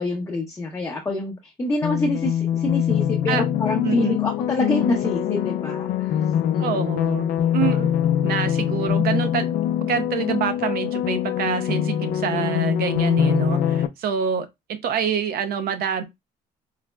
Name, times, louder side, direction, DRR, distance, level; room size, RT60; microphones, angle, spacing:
voice 1, 0.0-6.2 6.5-6.9, left 2 dB, 15° left, 0.7 m, -27 dB
sound 1, 1.8-13.9, left 10 dB, 55° left, 0.4 m, -23 dB
voice 2, 3.8-4.2 6.6-8.0 8.2-16.0, right 7 dB, 65° right, 0.6 m, -26 dB
3.9 x 2.0 x 2.2 m
cardioid pair, 110°, 17 cm